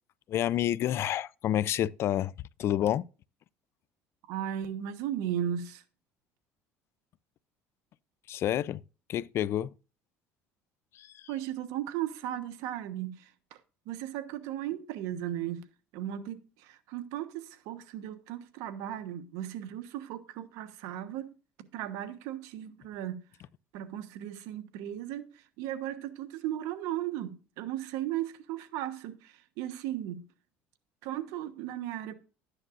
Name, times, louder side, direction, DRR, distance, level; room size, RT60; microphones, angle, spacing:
voice 1, 0.3-2.3 2.6-3.1 8.3-8.8 9.1-9.7 10.9-11.3, left 12 dB, 50° left, 0.4 m, -29 dB
voice 2, 4.3-5.8 11.3-13.6 13.9-15.7 15.9-21.3 21.7-23.2 23.7-30.2 31.0-32.1, right 11 dB, 80° right, 1.2 m, -36 dB
12.5 x 9.8 x 2.6 m
cardioid pair, 110°, 5 cm